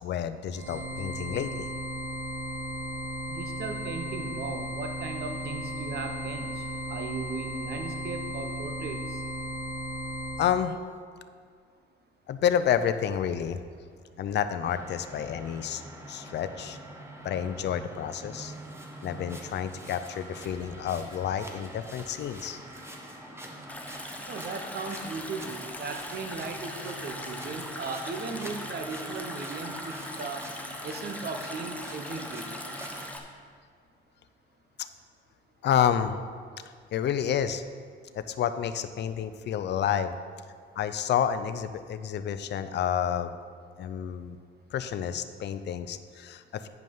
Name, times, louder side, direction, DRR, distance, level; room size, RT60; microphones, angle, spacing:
voice 1, 0.0-1.7 10.4-10.7 12.3-13.6 14.2-15.8 16.1-16.8 17.2-18.5 19.0-22.6 34.8-34.9 35.6-36.1 36.9-37.6 38.1-40.2 40.8-43.3 43.8-44.4 44.7-46.7, left 9 dB, 60° left, 11 dB, 0.5 m, -29 dB
sound 1, 0.5-10.5, equal, 80° right, 1.4 m, -35 dB
voice 2, 3.3-9.2 24.3-30.4 30.8-32.5, right 4 dB, 50° right, 5 dB, 1.0 m, -37 dB
sound 2, 14.6-33.1, right 1 dB, 10° right, 1.2 m, -44 dB
Stream, 23.7-33.2, left 1 dB, 5° left, 1.0 m, -41 dB
9.2 x 5.3 x 5.5 m, 2.1 s
cardioid pair, 90°, 20 cm